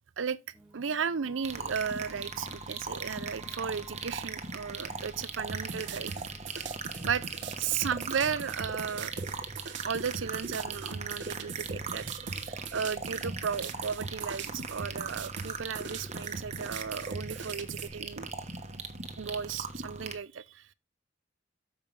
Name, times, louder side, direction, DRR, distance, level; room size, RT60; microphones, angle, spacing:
sound 1, 0.5-8.8, equal, 5° right, 1.7 m, -56 dB
voice 1, 0.7-6.1 7.0-7.2 7.6-9.1 9.8-18.3 19.2-20.7, right 6 dB, 90° right, 0.6 m, -35 dB
sound 2, 1.4-20.2, right 4 dB, 35° right, 1.1 m, -39 dB
sound 3, 5.5-17.9, right 5 dB, 65° right, 0.9 m, -41 dB
8.8 x 6.7 x 3.3 m
head